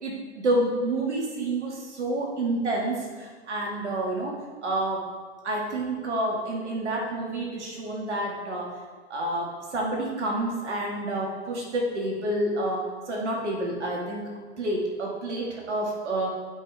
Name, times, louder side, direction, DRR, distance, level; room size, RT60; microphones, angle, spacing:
voice 1, 0.0-4.4 4.6-5.1 5.4-8.7 9.1-14.3 14.6-16.3, right 1 dB, 70° right, -1 dB, 2.1 m, -29 dB
12.5 x 5.3 x 3.5 m, 1.5 s
figure-of-eight pair, 100°, 36 cm